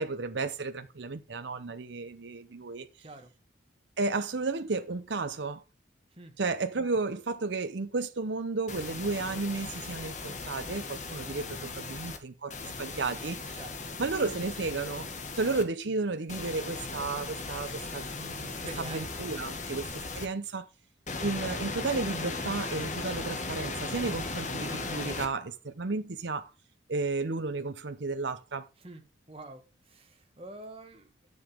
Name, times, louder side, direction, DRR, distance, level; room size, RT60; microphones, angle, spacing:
voice 1, 0.0-2.9 4.0-5.6 6.4-13.5 14.0-15.1 15.3-19.9 20.1-20.7 21.2-26.5 26.9-28.7, right 3 dB, 70° right, 0.8 m, -33 dB
sound 1, 8.7-12.2 12.5-15.6 16.3-20.2 21.1-25.3, left 3 dB, 40° left, 1.6 m, -37 dB
voice 2, 18.5-19.1 28.8-29.0 29.3-29.6 29.9-31.1, right 2 dB, 30° right, 1.6 m, -45 dB
11.0 x 7.1 x 3.6 m
head